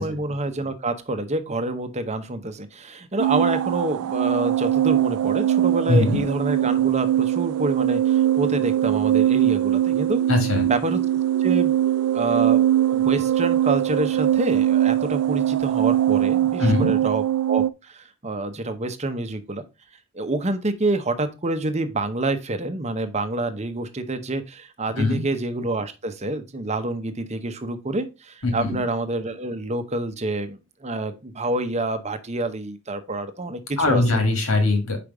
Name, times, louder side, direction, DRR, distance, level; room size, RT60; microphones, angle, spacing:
voice 1, 0.0-10.2 10.6-11.0 11.4-11.7 12.1-12.6 12.9-19.6 20.1-34.0, right 2 dB, 30° right, 10 dB, 0.8 m, -27 dB
sound 1, 3.2-17.7, right 12 dB, 85° right, 0.3 m, -21 dB
voice 2, 5.9-6.2 10.3-10.7 16.6-16.9 25.0-25.2 28.4-28.8 33.8-35.0, left 2 dB, 70° left, 4 dB, 2.2 m, -20 dB
5.1 x 5.0 x 4.7 m, 0.27 s
head